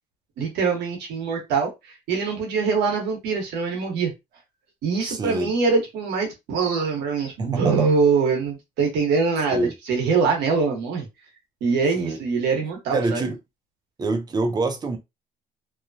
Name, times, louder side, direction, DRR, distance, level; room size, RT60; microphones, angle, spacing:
voice 1, 0.4-1.7 2.1-4.1 4.8-11.1 11.6-13.2, right 5 dB, 80° right, 1.3 m, -23 dB
voice 2, 5.0-5.5 7.4-7.9 9.5-9.7 12.0-12.2 12.9-13.4 14.0-15.0, right 2 dB, 25° right, 0.6 m, -26 dB
3.0 x 2.2 x 2.6 m
cardioid pair, 110°, 17 cm